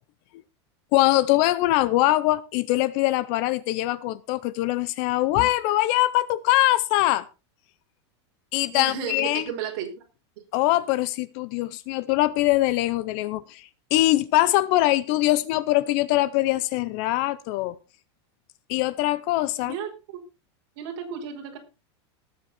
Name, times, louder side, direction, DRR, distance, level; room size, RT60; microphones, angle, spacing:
voice 1, 0.9-7.3 8.5-9.5 10.5-17.8 18.7-19.8, left 17 dB, 35° left, 0.6 m, -23 dB
voice 2, 8.7-9.9 19.6-19.9 20.8-21.6, right 8 dB, 45° right, 5.0 m, -33 dB
19.0 x 8.0 x 4.3 m
supercardioid pair, 175°, 14 cm